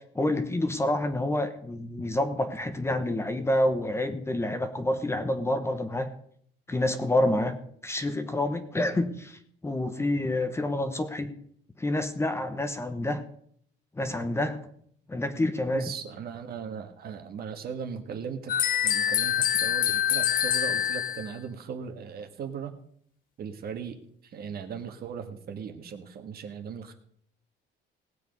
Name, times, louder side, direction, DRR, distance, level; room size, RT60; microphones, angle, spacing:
voice 1, 0.1-6.1 6.7-7.6 7.8-11.3 11.8-13.2 14.0-14.6 15.1-15.9, left 1 dB, 15° left, 8 dB, 1.0 m, -28 dB
voice 2, 15.7-18.5 18.8-22.7 23.4-24.0 24.3-26.9, right 6 dB, 50° right, 6 dB, 1.6 m, -38 dB
sound 1, 18.5-21.3, left 10 dB, 45° left, 0.6 m, -25 dB
18.0 x 7.7 x 5.3 m, 0.65 s
cardioid pair, 135°, 20 cm